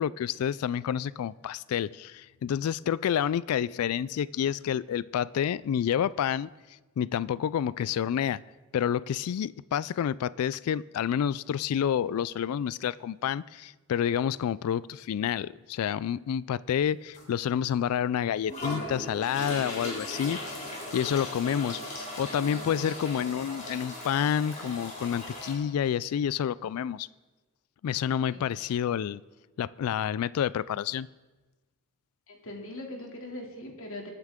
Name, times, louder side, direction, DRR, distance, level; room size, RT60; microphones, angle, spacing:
voice 1, 0.0-6.5 7.0-8.4 8.7-20.4 20.7-21.8 22.2-27.1 27.8-29.2 29.6-31.1, left 9 dB, 85° left, 20 dB, 0.3 m, -29 dB
sound 1, 17.1-17.3 17.8-17.9 18.5-25.5, left 1 dB, 35° left, 3.8 m, -38 dB
voice 2, 32.3-34.1, left 1 dB, 65° left, 1 dB, 2.6 m, -40 dB
23.5 x 9.7 x 3.6 m, 1.2 s
head